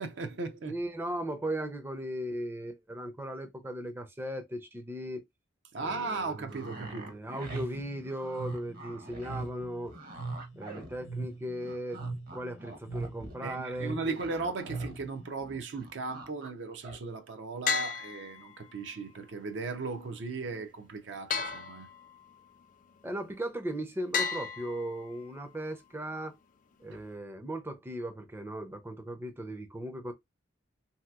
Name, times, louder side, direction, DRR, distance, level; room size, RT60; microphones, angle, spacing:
voice 1, 0.0-0.7 5.7-7.1 13.4-21.9 26.9-27.0, right 3 dB, 65° right, 0.5 m, -37 dB
voice 2, 0.7-5.2 5.8-9.9 10.6-12.0 12.3-14.2 23.0-26.4 26.8-30.1, right 1 dB, 10° right, 0.4 m, -37 dB
sound 1, 6.5-11.3 11.6-15.1 15.3-16.5 16.8-17.0, right 1 dB, 50° right, 0.9 m, -47 dB
sound 2, 7.4-15.3, right 3 dB, 70° left, 0.8 m, -40 dB
sound 3, 17.7-18.9 21.3-22.4 24.1-25.4, left 5 dB, 45° left, 0.4 m, -34 dB
3.2 x 2.7 x 2.3 m
head